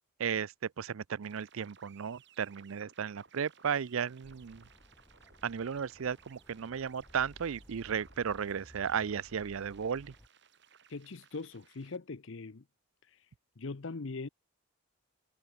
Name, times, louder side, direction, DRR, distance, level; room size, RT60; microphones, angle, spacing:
voice 1, 0.2-4.6 5.4-10.1, right 7 dB, 70° right, 0.5 m, -35 dB
sound 1, 1.2-12.0, right 7 dB, 50° right, 3.4 m, -62 dB
sound 2, 4.2-10.3, equal, 10° left, 1.5 m, -58 dB
voice 2, 10.9-12.6 13.0-13.3 13.6-14.3, left 3 dB, 60° left, 0.7 m, -41 dB
head